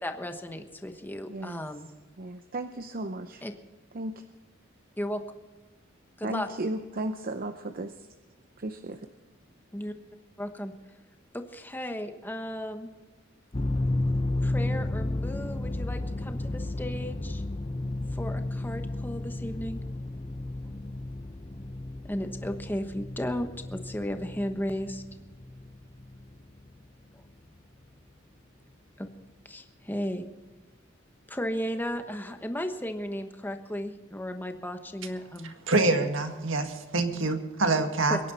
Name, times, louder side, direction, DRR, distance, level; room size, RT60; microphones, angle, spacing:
voice 1, 0.0-1.9 3.4-3.5 5.0-5.2 6.2-6.5 9.7-9.9 10.4-10.7 11.3-12.9 14.4-17.4 18.1-19.8 22.1-25.0 29.0-29.1 29.4-30.3 31.3-35.5, equal, 10° left, 6 dB, 1.1 m, -35 dB
voice 2, 1.3-1.6 2.2-3.4 3.9-4.2 6.2-7.9 8.6-9.0, right 1 dB, 45° right, 8 dB, 0.7 m, -34 dB
sound 1, 13.5-26.8, left 2 dB, 25° left, 0.6 m, -33 dB
voice 3, 35.4-38.2, right 3 dB, 70° right, 6 dB, 1.8 m, -26 dB
22.5 x 11.0 x 4.2 m, 1.2 s
head